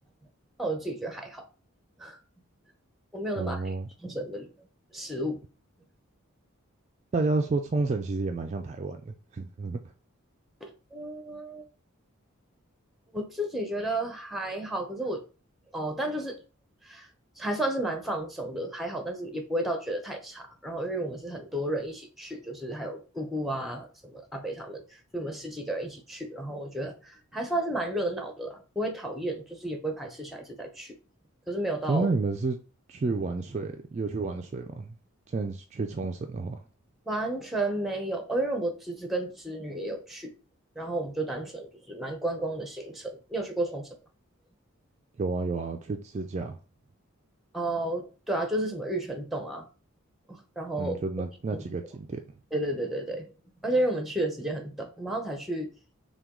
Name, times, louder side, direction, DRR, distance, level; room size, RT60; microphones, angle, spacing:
voice 1, 0.6-1.5 2.0-2.2 3.1-3.7 4.0-4.5 4.9-5.4 10.6-11.7 13.1-15.2 15.7-16.4 16.8-17.1 17.4-30.9 31.5-32.1 37.1-40.3 40.8-43.9 47.5-49.7 50.3-51.0 51.5-51.6 52.5-53.3 53.6-55.7, right 1 dB, ahead, 0.7 m, -32 dB
voice 2, 3.4-3.9 7.1-9.8 31.9-32.6 32.9-35.0 35.3-36.6 45.2-46.6 50.8-52.2, right 3 dB, 30° right, 0.3 m, -30 dB
5.7 x 2.3 x 3.7 m
head